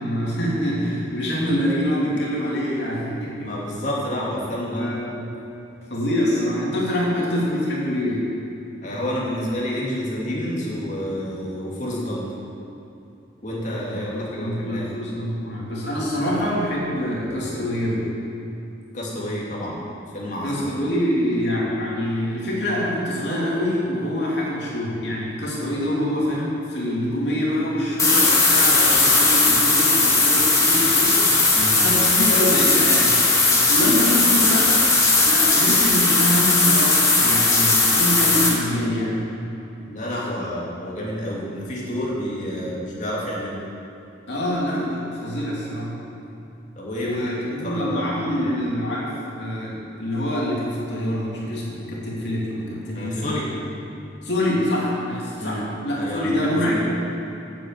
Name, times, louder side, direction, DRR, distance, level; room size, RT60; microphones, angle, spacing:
voice 1, 0.0-3.5 4.7-5.3 5.9-8.2 13.9-18.0 20.4-31.2 31.8-33.2 33.5-34.8 35.3-39.2 44.3-45.9 47.0-53.5 54.2-56.9, equal, 65° left, -5 dB, 2.8 m, -25 dB
voice 2, 3.4-4.9 8.8-12.2 13.4-14.9 18.9-19.8 20.1-20.8 31.5-31.8 39.9-43.6 46.8-47.2 47.6-48.6 52.9-53.5 55.4-55.7 55.9-56.9, equal, 40° left, -5 dB, 2.6 m, -29 dB
sound 1, 28.0-38.5, left 3 dB, 20° left, 1.7 m, -17 dB
9.3 x 7.9 x 7.6 m, 2.9 s
head